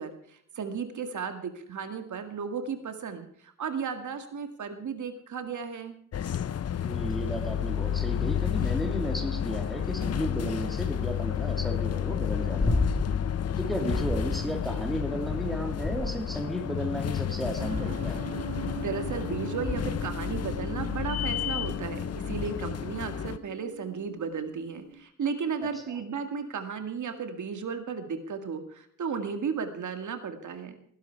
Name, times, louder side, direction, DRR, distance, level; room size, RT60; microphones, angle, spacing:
voice 1, 0.0-6.0 18.8-30.8, right 6 dB, 70° right, 8 dB, 2.0 m, -34 dB
sound 1, 6.1-23.4, left 9 dB, 50° left, 0.8 m, -31 dB
voice 2, 6.8-12.8 13.6-18.3, equal, ahead, 4 dB, 2.9 m, -34 dB
sound 2, 12.6-13.2 13.9-14.4 15.7-16.5 17.7-18.2 19.6-20.1 22.4-22.5, left 2 dB, 25° left, 3.3 m, -30 dB
sound 3, 17.6-25.0, right 3 dB, 85° right, 5.3 m, -41 dB
18.0 x 11.0 x 4.6 m, 0.64 s
wide cardioid pair, 120°, 31 cm